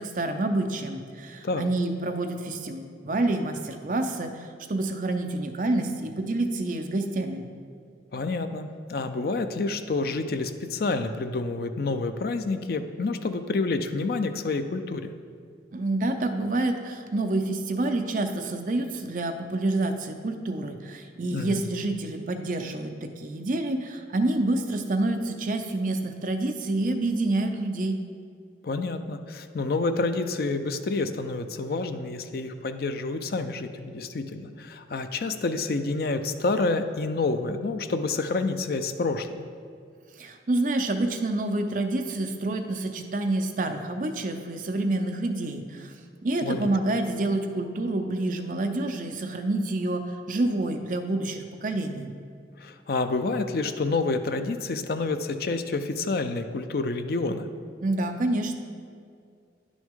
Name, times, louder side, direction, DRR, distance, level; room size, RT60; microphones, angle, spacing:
voice 1, 0.0-7.4 15.7-28.0 40.2-45.9 46.2-52.1 57.8-58.5, right 2 dB, 45° right, 5 dB, 0.5 m, -28 dB
voice 2, 8.1-15.1 21.3-21.6 28.6-39.4 46.4-46.7 52.6-57.5, left 3 dB, 55° left, 9 dB, 0.4 m, -28 dB
9.7 x 6.2 x 3.7 m, 2.3 s
head